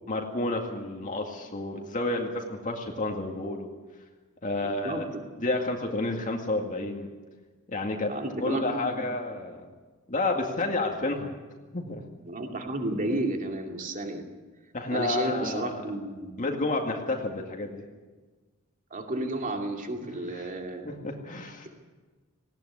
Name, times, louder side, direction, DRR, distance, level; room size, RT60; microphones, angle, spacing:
voice 1, 0.1-3.7 4.4-5.1 5.4-7.1 7.7-8.1 8.4-9.6 10.1-11.3 11.7-12.0 14.7-15.8 16.4-17.8 20.3-20.5 20.8-21.7, left 2 dB, 35° left, 1 dB, 2.1 m, -30 dB
voice 2, 4.6-5.2 8.1-9.0 12.3-14.2 14.9-16.3 18.9-20.8 21.4-21.5, right 2 dB, 40° right, 3 dB, 2.6 m, -32 dB
19.0 x 18.0 x 9.6 m, 1.3 s
head